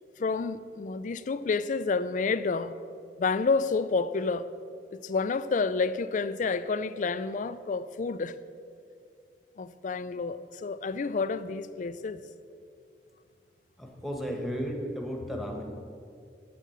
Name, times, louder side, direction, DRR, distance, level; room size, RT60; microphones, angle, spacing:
voice 1, 0.2-2.7 3.2-4.5 5.0-8.4 9.6-12.2, left 4 dB, 45° left, 0.4 m, -29 dB
voice 2, 13.8-15.6, equal, ahead, 1.4 m, -34 dB
8.0 x 7.5 x 7.9 m
head